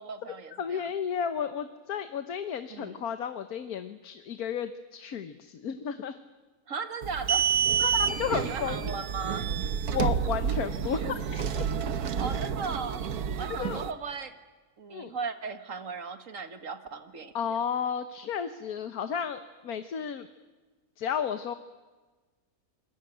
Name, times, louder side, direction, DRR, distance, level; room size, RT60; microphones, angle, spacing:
voice 1, 0.0-0.9 2.7-3.0 6.7-7.5 7.8-8.0 8.3-9.5 12.2-13.1 13.4-14.4 14.8-17.3, right 5 dB, 60° right, 9 dB, 2.0 m, -37 dB
voice 2, 0.6-6.2 7.8-8.9 9.9-11.7 13.5-13.8 14.9-15.1 17.3-20.3 21.0-21.5, left 7 dB, 80° left, 10 dB, 1.6 m, -33 dB
sound 1, 7.0-13.9, right 7 dB, 80° right, 1.5 m, -29 dB
27.5 x 22.0 x 9.2 m, 1.3 s
omnidirectional pair, 1.6 m